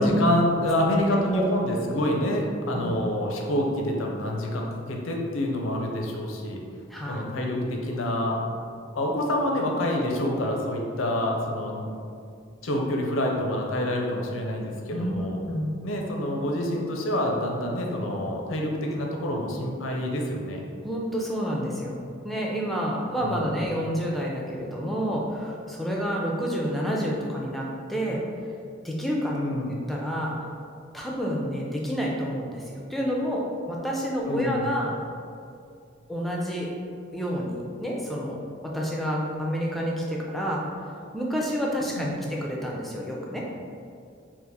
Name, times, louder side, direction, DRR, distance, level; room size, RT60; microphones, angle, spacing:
voice 1, 0.0-6.6 7.1-8.4 8.9-11.9 12.6-15.4 15.8-20.6 23.2-23.5 29.3-29.8 34.3-34.7 41.9-42.2, left 1 dB, 85° left, 0 dB, 0.6 m, -27 dB
voice 2, 1.1-1.4 2.7-3.0 6.9-7.2 14.9-15.7 20.8-28.2 28.8-29.4 29.9-30.3 30.9-34.9 36.1-36.7 37.1-38.4 38.6-43.4, equal, ahead, -3 dB, 0.4 m, -29 dB
3.7 x 2.5 x 4.1 m, 2.4 s
head